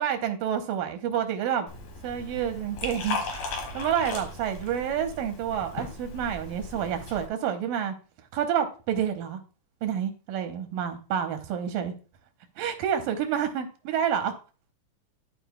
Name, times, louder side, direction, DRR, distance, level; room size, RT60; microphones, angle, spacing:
voice 1, 0.0-1.7 2.0-8.0 8.3-9.4 9.8-11.9 12.6-14.3, right 9 dB, 90° right, 2.5 m, -29 dB
Liquid, 1.7-7.3, left 3 dB, 65° left, 2.6 m, -37 dB
13.0 x 4.7 x 2.2 m
omnidirectional pair, 3.9 m